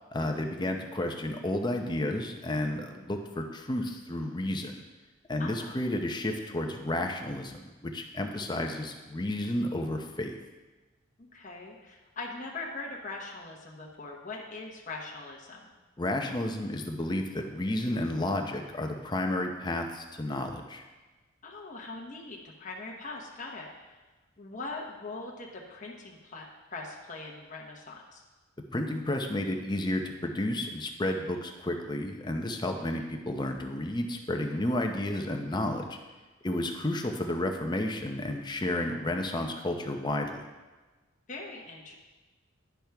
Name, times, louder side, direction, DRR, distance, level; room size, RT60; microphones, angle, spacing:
voice 1, 0.1-4.7 5.3-10.4 16.0-20.8 28.7-36.0 36.4-40.4, left 1 dB, 20° left, 4 dB, 0.7 m, -31 dB
voice 2, 5.4-5.8 11.2-15.7 21.4-24.0 24.4-28.2 41.3-41.9, left 3 dB, 40° left, -2 dB, 1.0 m, -41 dB
10.5 x 6.1 x 3.5 m, 1.2 s
head